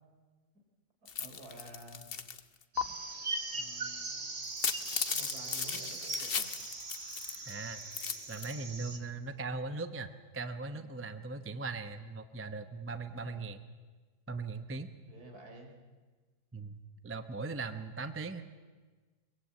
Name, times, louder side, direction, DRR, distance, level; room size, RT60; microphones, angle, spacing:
voice 1, 1.0-2.1 3.5-4.2 4.7-6.5 13.1-13.5 15.1-15.7, right 1 dB, 70° right, 2 dB, 4.3 m, -51 dB
sound 1, 1.1-2.4 2.8-2.9 4.4-7.5 7.8-8.5, left 6 dB, 40° left, 1.0 m, -36 dB
sound 2, 2.7-9.0, right 3 dB, 40° right, 2.2 m, -40 dB
voice 2, 7.5-7.8 8.3-13.6 14.3-14.9 16.5-16.8 17.0-18.4, right 3 dB, 10° right, 9 dB, 0.6 m, -39 dB
23.0 x 21.5 x 8.3 m, 1.4 s
omnidirectional pair, 1.7 m